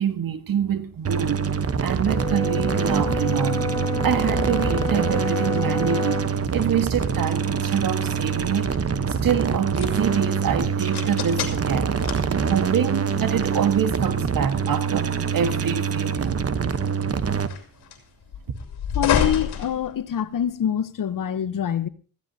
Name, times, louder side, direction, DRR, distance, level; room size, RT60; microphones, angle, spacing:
voice 1, 0.0-1.5 1.8-6.2 6.5-8.7 9.2-11.9 12.4-16.4, right 8 dB, 60° right, 1.6 m, -26 dB
sound 1, 1.0-17.5, right 6 dB, 35° right, 1.1 m, -25 dB
sound 2, 1.2-20.5, left 8 dB, 75° left, 2.7 m, -34 dB
Brass instrument, 2.1-6.3, left 4 dB, 10° left, 0.9 m, -29 dB
voice 2, 18.9-21.9, left 9 dB, 55° left, 1.0 m, -25 dB
20.5 x 14.5 x 2.8 m
cardioid pair, 70°, 39 cm